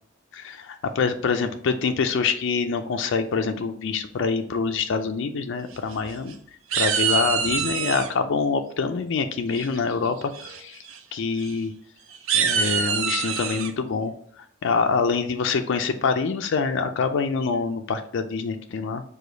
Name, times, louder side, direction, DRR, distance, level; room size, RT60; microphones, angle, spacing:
voice 1, 0.3-6.3 6.7-10.8 11.1-11.7 12.3-14.1 14.6-19.0, left 5 dB, 65° left, 7 dB, 0.4 m, -25 dB
sound 1, 5.7-6.3 6.7-8.1 9.5-9.9 10.3-10.6 10.9-11.0 11.4-11.5 12.1-13.7, right 7 dB, 70° right, 0.5 m, -25 dB
4.9 x 2.3 x 3.9 m, 0.63 s
head